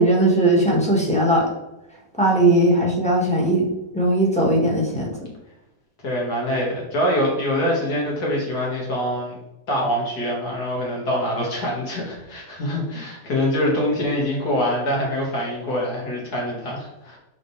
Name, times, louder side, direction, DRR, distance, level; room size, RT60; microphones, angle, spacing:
voice 1, 0.0-1.4 2.2-3.6 3.9-5.1, right 1 dB, 5° left, -3 dB, 1.4 m, -18 dB
voice 2, 6.0-9.4 9.7-17.2, equal, 65° left, -3 dB, 2.3 m, -24 dB
7.7 x 4.2 x 3.3 m, 0.96 s
omnidirectional pair, 1.8 m